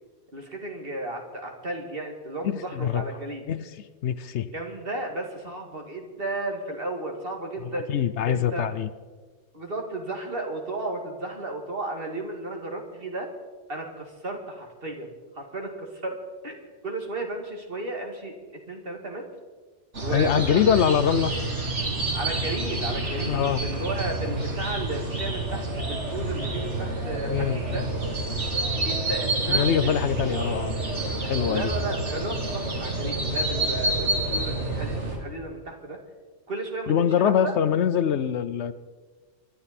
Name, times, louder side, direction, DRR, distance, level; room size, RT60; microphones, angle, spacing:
voice 1, 0.3-3.4 4.5-7.9 8.3-8.7 9.5-13.3 13.7-16.2 16.4-18.3 18.7-19.3 20.0-21.2 22.1-27.8 28.8-30.6 31.4-36.0 36.5-37.5, right 2 dB, 50° right, 2 dB, 2.3 m, -34 dB
voice 2, 2.4-3.0 3.5-3.7 4.0-4.5 7.9-8.9 20.1-21.3 23.3-23.6 27.3-27.9 29.5-30.7 31.2-31.7 36.9-38.7, left 8 dB, 70° left, 14 dB, 0.9 m, -24 dB
sound 1, 19.9-35.2, right 2 dB, 75° right, 2.6 m, -28 dB
25.0 x 11.5 x 4.3 m, 1.3 s
omnidirectional pair, 1.2 m